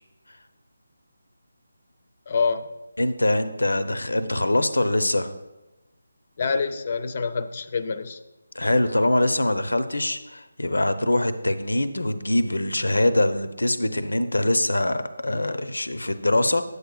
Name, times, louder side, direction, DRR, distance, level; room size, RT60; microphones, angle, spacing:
voice 1, 2.3-2.6 6.4-8.2, left 5 dB, 40° left, 10 dB, 0.4 m, -26 dB
voice 2, 3.0-5.3 8.5-16.6, left 1 dB, 90° left, 10 dB, 0.5 m, -23 dB
8.1 x 7.9 x 2.3 m, 1.0 s
figure-of-eight pair, 165°, 0 cm